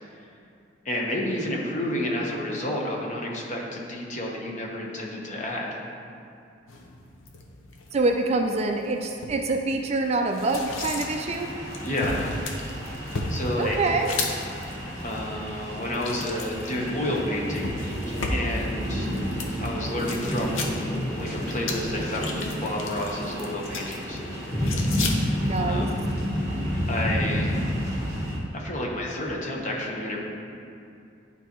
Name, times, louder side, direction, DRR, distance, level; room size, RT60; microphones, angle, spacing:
voice 1, 0.8-5.8 11.8-12.3 13.3-13.8 15.0-17.7 18.3-19.1 19.6-20.9 21.2-24.2 25.6-25.9 26.9-27.5 28.5-30.2, left 1 dB, 40° left, -2 dB, 1.0 m, -30 dB
sound 1, 6.7-25.7, left 2 dB, 80° left, 0.8 m, -36 dB
voice 2, 7.9-11.5 13.5-14.1 25.4-25.9, right 3 dB, 30° right, 3 dB, 0.4 m, -25 dB
sound 2, 10.7-28.4, equal, 15° left, 1.6 m, -30 dB
11.0 x 4.0 x 3.0 m, 2.5 s
head